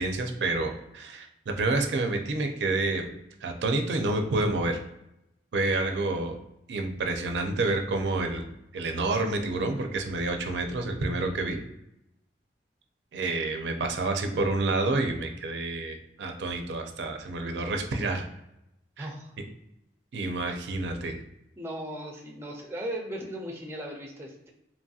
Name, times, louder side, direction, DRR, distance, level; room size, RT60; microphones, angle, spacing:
voice 1, 0.0-3.1 3.4-4.8 5.5-6.3 6.7-8.5 8.7-11.6 13.1-18.3 19.0-19.1 19.4-19.5 20.1-21.2, right 2 dB, 75° right, 5 dB, 0.4 m, -28 dB
voice 2, 19.0-19.3 21.6-24.5, right 1 dB, 15° right, 0 dB, 0.4 m, -37 dB
2.9 x 2.6 x 2.3 m, 0.84 s
head